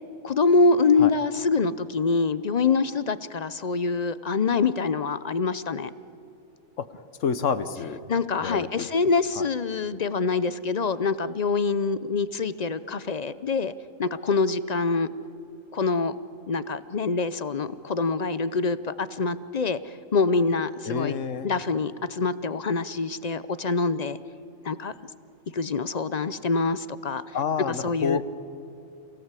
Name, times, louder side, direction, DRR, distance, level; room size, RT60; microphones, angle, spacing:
voice 1, 0.2-5.9 8.1-13.7 14.0-15.1 15.7-16.2 16.5-21.2 21.4-24.2 24.6-24.9 25.5-27.2 27.7-28.2, left 4 dB, 45° left, 15 dB, 0.5 m, -25 dB
voice 2, 7.2-8.0 8.4-8.9 9.4-9.5 20.8-21.5 27.3-28.2, left 6 dB, 65° left, 13 dB, 1.4 m, -28 dB
28.5 x 17.0 x 8.2 m, 2.9 s
omnidirectional pair, 1.4 m